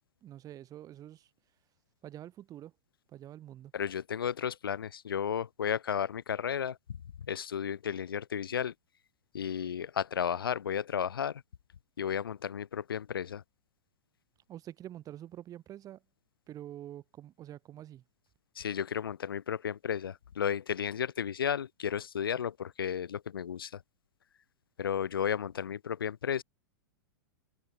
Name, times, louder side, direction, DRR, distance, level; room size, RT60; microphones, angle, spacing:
voice 1, 0.2-1.3 2.0-2.7 3.1-3.7 14.5-16.0 16.5-18.0, right 12 dB, 30° right, 3.5 m, -46 dB
voice 2, 3.7-6.8 7.3-8.7 9.3-11.4 12.0-13.4 18.6-23.7 24.8-26.4, left 8 dB, 85° left, 0.6 m, -33 dB
hypercardioid pair, 110°, 12 cm